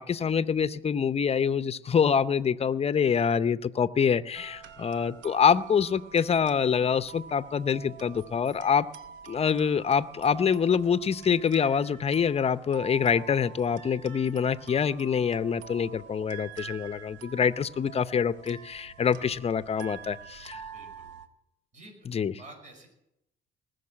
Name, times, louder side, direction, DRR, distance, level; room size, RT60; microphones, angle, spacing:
voice 1, 0.0-8.9 9.2-20.6 22.1-22.3, left 7 dB, 35° left, 15 dB, 0.7 m, -25 dB
sound 1, 4.3-21.3, right 7 dB, 85° right, 1.0 m, -47 dB
voice 2, 20.5-21.0 21.7-22.0 22.4-22.9, right 2 dB, 40° right, 1 dB, 5.6 m, -49 dB
19.5 x 6.6 x 8.7 m, 0.84 s
supercardioid pair, 80°, 18 cm